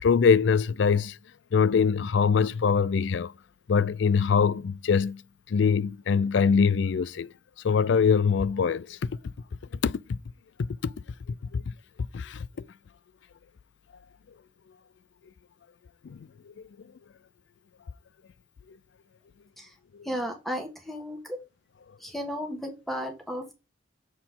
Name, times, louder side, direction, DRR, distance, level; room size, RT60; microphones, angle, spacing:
voice 1, 0.0-1.2 1.5-3.3 3.7-5.2 5.5-7.3 7.6-9.2 9.8-10.2 10.6-10.9 11.5-11.6 12.1-12.7 16.0-16.2 18.7-18.8, left 6 dB, 70° left, 0.4 m, -23 dB
voice 2, 20.0-21.4 22.0-23.5, equal, ahead, 1.5 m, -34 dB
7.4 x 4.3 x 3.7 m
head